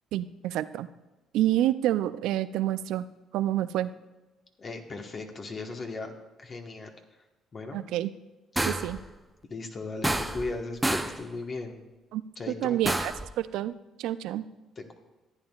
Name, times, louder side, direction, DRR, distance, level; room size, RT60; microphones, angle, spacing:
voice 1, 0.1-0.9 1.3-3.1 3.3-3.9 7.7-8.1 8.6-9.0 12.1-12.2 12.6-14.5, right 13 dB, 75° right, 15 dB, 0.3 m, -28 dB
voice 2, 4.6-6.1 6.4-6.9 7.5-7.8 9.5-11.8 12.4-12.8 14.8-14.9, left 3 dB, 40° left, 3 dB, 1.2 m, -37 dB
sound 1, 8.6-9.0 10.0-10.6 10.8-11.2 12.8-13.3, right 1 dB, 10° right, 0.5 m, -28 dB
14.5 x 8.8 x 2.3 m, 1.1 s
supercardioid pair, 70°, 0 cm